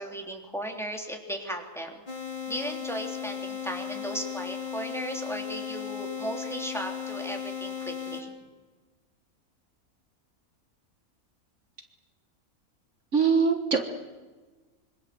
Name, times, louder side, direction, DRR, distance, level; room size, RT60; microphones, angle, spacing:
voice 1, 0.0-2.0 2.5-8.3, right 1 dB, ahead, 2 dB, 3.5 m, -36 dB
sound 1, 2.1-8.2, left 7 dB, 35° left, 3.4 m, -36 dB
voice 2, 13.1-13.8, right 5 dB, 55° right, 5 dB, 1.8 m, -22 dB
26.0 x 24.5 x 7.9 m, 1.3 s
omnidirectional pair, 1.5 m